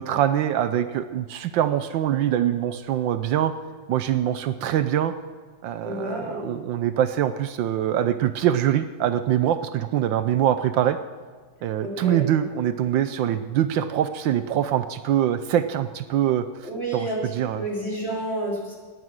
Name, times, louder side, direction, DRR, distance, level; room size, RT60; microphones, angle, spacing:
voice 1, 0.0-3.5 3.9-5.1 5.6-11.0 11.6-16.4 16.9-17.1 17.3-17.6, right 11 dB, 75° right, 11 dB, 1.3 m, -23 dB
voice 2, 5.8-6.6 11.8-12.2 16.6-18.8, right 1 dB, 30° left, -3 dB, 3.9 m, -30 dB
18.5 x 9.6 x 6.2 m, 1.5 s
omnidirectional pair, 2.1 m